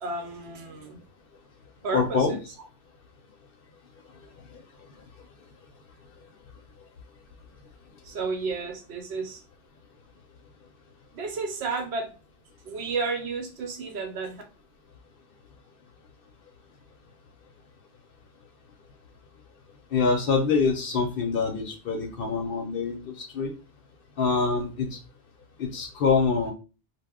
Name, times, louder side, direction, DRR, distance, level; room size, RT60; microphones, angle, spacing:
voice 1, 0.0-1.0 1.8-2.4 8.0-9.4 11.1-12.1 12.6-14.4, right 4 dB, 70° right, 4 dB, 0.8 m, -32 dB
voice 2, 1.9-2.4 19.9-23.5 24.2-24.9 25.6-26.5, left 4 dB, 60° left, 3 dB, 0.7 m, -25 dB
2.1 x 2.0 x 3.5 m, 0.33 s
omnidirectional pair, 1.2 m